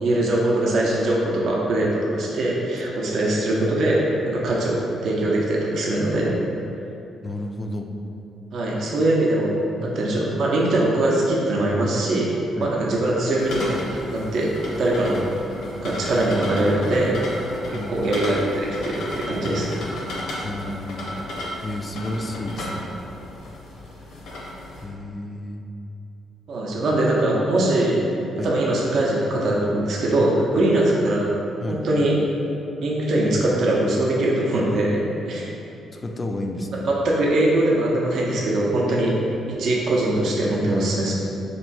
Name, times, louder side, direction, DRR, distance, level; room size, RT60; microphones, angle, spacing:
voice 1, 0.0-6.4 8.5-14.5 14.8-15.2 15.8-17.2 17.7-19.7 26.5-28.0 28.4-31.3 31.7-32.1 32.8-35.5 36.9-39.1 39.5-41.1, right 1 dB, 65° right, -4 dB, 0.6 m, -22 dB
voice 2, 7.2-7.9 9.8-10.0 12.6-12.8 17.7-18.1 20.4-21.1 21.6-23.0 24.8-25.7 28.4-28.6 30.6-30.7 31.6-31.9 35.9-36.9, left 1 dB, 25° left, 4 dB, 0.3 m, -31 dB
sound 1, 13.4-24.8, left 1 dB, 75° left, 0.8 m, -34 dB
3.0 x 2.6 x 4.4 m, 2.8 s
cardioid pair, 90°, 0 cm